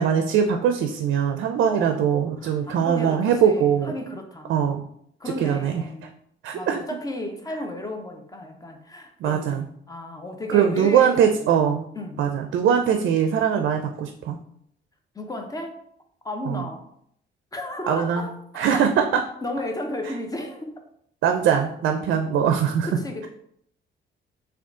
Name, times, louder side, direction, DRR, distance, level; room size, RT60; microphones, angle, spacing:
voice 1, 0.0-3.9 4.5-4.8 5.4-5.7 6.4-6.8 9.2-9.6 10.5-11.9 12.2-14.4 16.5-16.6 17.9-18.2 18.6-19.0 21.2-22.9, right 8 dB, 70° right, 5 dB, 0.4 m, -21 dB
voice 2, 1.6-4.5 5.2-6.1 6.5-11.5 11.9-12.2 15.1-15.8 16.2-16.9 17.5-18.3 18.7-18.9 19.4-20.7 22.9-23.3, left 1 dB, 20° left, 4 dB, 0.7 m, -34 dB
3.6 x 2.4 x 3.6 m, 0.70 s
cardioid pair, 90°, 20 cm